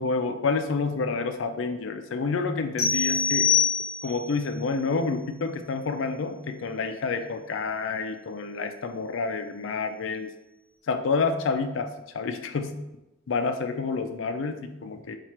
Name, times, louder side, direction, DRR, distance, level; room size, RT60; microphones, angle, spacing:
voice 1, 0.0-3.5 4.0-10.3 10.9-11.9 12.1-12.8 13.3-15.2, left 4 dB, 85° left, 8 dB, 0.4 m, -28 dB
sound 1, 2.8-4.3, left 6 dB, 15° left, 0.8 m, -24 dB
4.5 x 2.4 x 4.3 m, 0.94 s
head